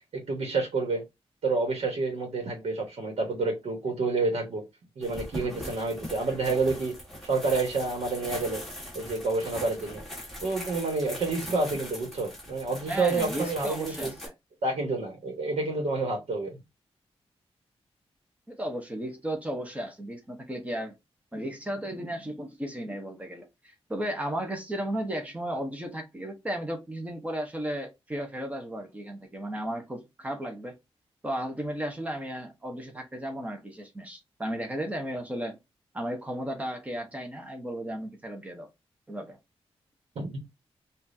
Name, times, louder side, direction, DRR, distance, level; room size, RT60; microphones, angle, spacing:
voice 1, 0.1-1.0 1.4-4.6 5.0-6.9 7.2-8.6 8.9-10.0 10.4-14.1 14.6-16.6 40.1-40.4, right 3 dB, 75° right, 1.3 m, -29 dB
sound 1, 5.0-14.3, equal, ahead, 1.4 m, -41 dB
voice 2, 12.9-14.3 18.5-20.9 21.3-30.8 31.2-35.6 35.9-38.7 39.1-39.4, right 1 dB, 15° right, 0.9 m, -34 dB
5.0 x 2.6 x 2.7 m
wide cardioid pair, 180°, 11 cm